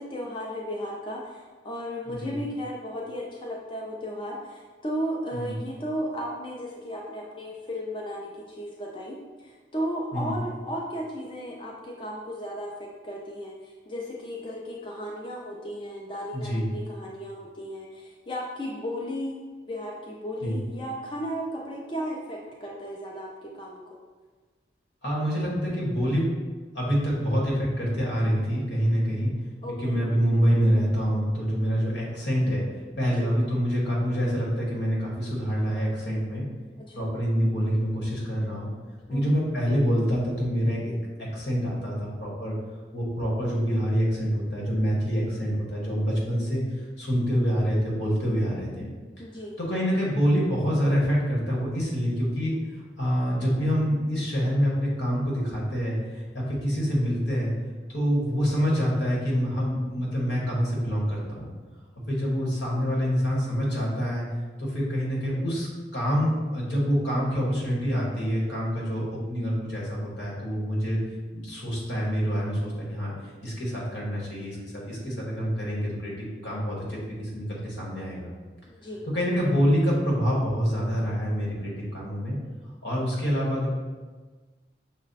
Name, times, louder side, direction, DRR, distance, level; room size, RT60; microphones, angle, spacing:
voice 1, 0.0-19.4 19.7-24.0 29.6-30.0 33.0-33.3 36.9-37.0 39.1-39.4 49.2-49.5 78.7-79.0, equal, 30° left, -2 dB, 0.4 m, -35 dB
voice 2, 2.1-2.4 5.3-5.5 10.1-10.3 16.3-16.7 20.4-20.6 25.0-26.3 26.7-29.3 29.8-32.6 33.0-36.4 36.9-38.7 39.1-40.9 41.2-42.6 42.9-48.9 49.7-52.5 53.0-57.5 57.9-61.5 62.1-64.3 64.6-65.7 65.9-71.0 71.3-73.1 73.4-78.3 79.1-82.4 82.8-83.7, equal, 85° left, -4 dB, 1.4 m, -26 dB
6.0 x 2.1 x 4.0 m, 1.3 s
head